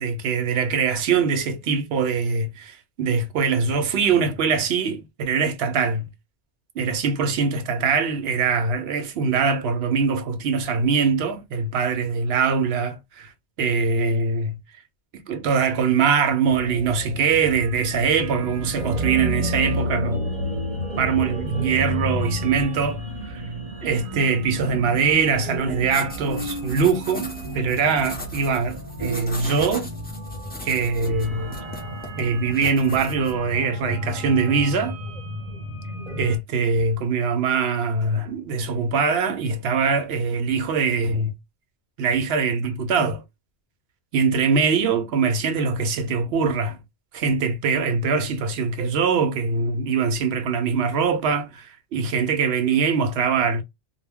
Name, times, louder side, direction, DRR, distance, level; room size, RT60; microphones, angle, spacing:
voice 1, 0.0-6.1 6.8-13.3 13.6-14.6 15.1-20.2 21.0-23.4 23.8-27.3 27.5-29.9 30.6-31.5 32.2-35.0 36.2-41.3 42.0-43.2 44.1-46.8 47.1-53.6, right 5 dB, 70° right, 0.8 m, -22 dB
sound 1, 16.5-36.4, equal, 40° right, 0.8 m, -31 dB
sound 2, 25.8-33.4, left 1 dB, 15° left, 0.4 m, -39 dB
2.2 x 2.1 x 3.4 m
omnidirectional pair, 1.2 m